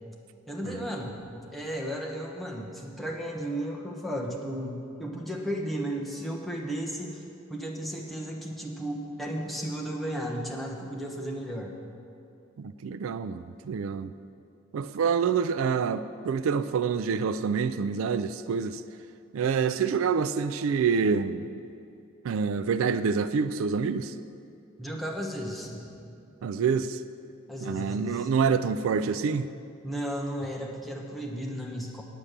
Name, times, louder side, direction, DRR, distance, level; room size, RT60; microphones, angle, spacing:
voice 1, 0.5-1.2 1.5-7.2 7.5-11.7 24.8-26.0 27.5-28.3 29.8-32.0, equal, ahead, -2 dB, 1.0 m, -34 dB
voice 2, 12.6-14.1 14.7-18.8 19.3-21.5 22.2-24.1 26.4-27.0 27.6-29.5, right 6 dB, 75° right, 12 dB, 0.3 m, -27 dB
8.9 x 8.5 x 6.6 m, 2.7 s
head